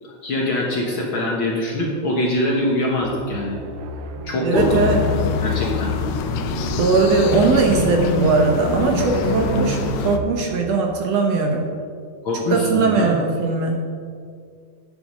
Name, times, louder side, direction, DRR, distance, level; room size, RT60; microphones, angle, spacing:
voice 1, 0.0-3.6 4.2-5.9 12.2-13.1, left 1 dB, 55° left, -2 dB, 1.7 m, -23 dB
sound 1, 3.0-10.7, right 5 dB, 85° right, 2.4 m, -31 dB
voice 2, 4.4-5.0 6.8-11.7 12.5-13.8, right 3 dB, 65° right, 2 dB, 2.0 m, -19 dB
sound 2, 4.5-10.2, left 6 dB, 75° left, 1.9 m, -25 dB
10.0 x 9.2 x 5.2 m, 2.2 s
omnidirectional pair, 3.5 m